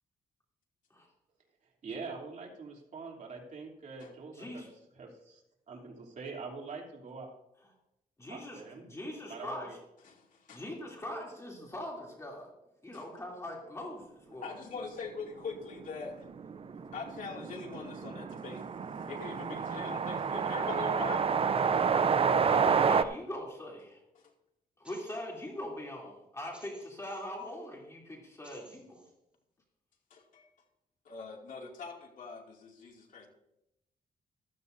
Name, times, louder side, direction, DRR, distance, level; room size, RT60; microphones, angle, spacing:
voice 1, 1.8-4.6 4.9-5.4 5.7-7.3 8.3-8.8 9.3-9.7, right 4 dB, 55° right, -1 dB, 3.2 m, -44 dB
voice 2, 4.3-4.7 8.2-9.7 10.5-12.5 12.8-14.6 22.5-24.0 24.8-29.0, left 1 dB, 20° left, -2 dB, 3.1 m, -41 dB
voice 3, 10.0-10.6 12.9-13.1 14.4-16.2 16.9-18.7 19.1-21.3 24.1-24.2 30.1-30.5 31.0-33.3, left 5 dB, 60° left, 0 dB, 2.6 m, -42 dB
sound 1, 15.6-15.7 15.9-16.0 16.3-23.0, right 6 dB, 40° right, 0.6 m, -29 dB
sound 2, 24.8-25.5 26.5-27.5 28.4-29.1, right 1 dB, 5° right, 4.0 m, -58 dB
15.0 x 13.0 x 2.7 m, 0.85 s
cardioid pair, 110°, 15 cm